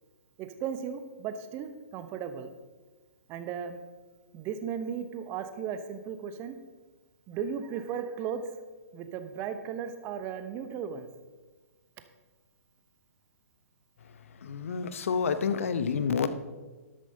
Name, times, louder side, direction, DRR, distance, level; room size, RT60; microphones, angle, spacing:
voice 1, 0.4-2.5 3.3-3.8 4.3-6.6 7.3-8.4 8.9-11.1, right 7 dB, 30° right, 9 dB, 1.0 m, -36 dB
voice 2, 14.4-16.3, left 6 dB, 60° left, 11 dB, 0.8 m, -28 dB
12.5 x 12.5 x 2.8 m, 1.3 s
figure-of-eight pair, 120°, 8 cm